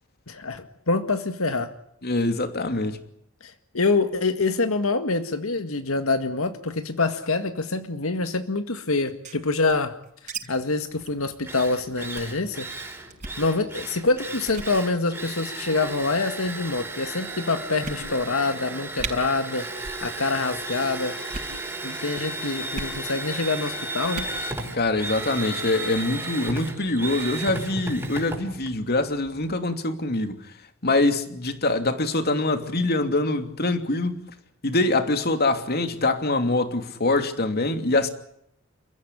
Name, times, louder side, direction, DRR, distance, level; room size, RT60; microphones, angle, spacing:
voice 1, 0.3-1.7 3.4-10.0 10.2-12.7 13.4-19.7 20.0-21.2 21.8-24.3, left 3 dB, 85° left, 1.9 m, -26 dB
voice 2, 2.0-3.0 24.7-30.4 30.8-34.1 34.6-38.1, left 2 dB, 50° left, 2.8 m, -24 dB
sound 1, 9.0-10.4 10.7-10.8 11.0-11.2 11.6-11.7 12.1-12.4 13.1-13.4 14.0-14.2 14.5-14.7 15.6-16.0 16.8-16.9 17.3-17.4 17.8-18.4 18.7-18.8 19.0-19.1 19.8-20.1 20.3-20.7 21.2-21.6 22.7-23.0 24.0-24.4, right 4 dB, 35° right, 6.4 m, -36 dB
Drill, 11.0-11.1 11.4-29.6, right 2 dB, 10° right, 5.1 m, -34 dB
30.0 x 15.0 x 10.0 m
head